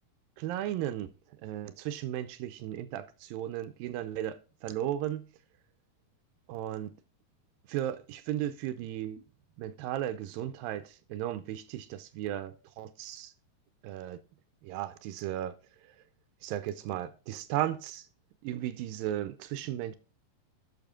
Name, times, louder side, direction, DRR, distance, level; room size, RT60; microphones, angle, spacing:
voice 1, 0.4-5.3 6.5-6.9 7.7-9.2 9.6-13.3 13.8-14.2 14.6-15.6 16.4-18.1 18.4-20.0, right 12 dB, 80° right, 2.2 m, -35 dB
12.0 x 6.2 x 3.7 m
omnidirectional pair, 4.6 m